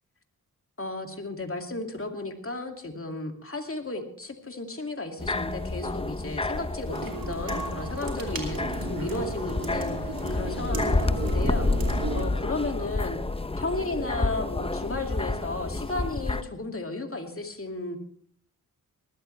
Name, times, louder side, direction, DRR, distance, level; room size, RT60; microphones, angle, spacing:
voice 1, 0.8-11.7 12.1-13.2 13.6-18.0, left 2 dB, 35° left, 4 dB, 2.4 m, -34 dB
sound 1, 5.2-16.4, left 2 dB, 15° left, 0.7 m, -29 dB
sound 2, 6.9-12.3, right 4 dB, 65° right, 3.0 m, -35 dB
19.5 x 13.5 x 3.3 m, 0.64 s
cardioid pair, 45°, 37 cm